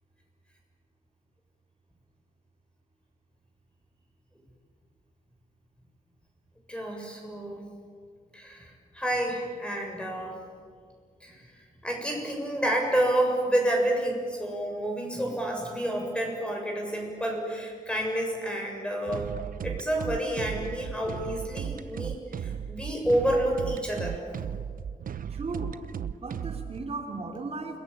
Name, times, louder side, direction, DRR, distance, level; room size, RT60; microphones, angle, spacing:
voice 1, 6.7-7.6 8.3-10.3 11.2-11.4 11.8-19.3 19.6-24.2, right 1 dB, 5° left, 1 dB, 7.2 m, -29 dB
sound 1, 19.1-26.8, right 8 dB, 75° right, 0.8 m, -36 dB
voice 2, 25.3-25.7 26.1-27.8, right 3 dB, 45° right, 3 dB, 3.1 m, -36 dB
29.0 x 21.5 x 8.8 m, 2.1 s
wide cardioid pair, 130°, 15 cm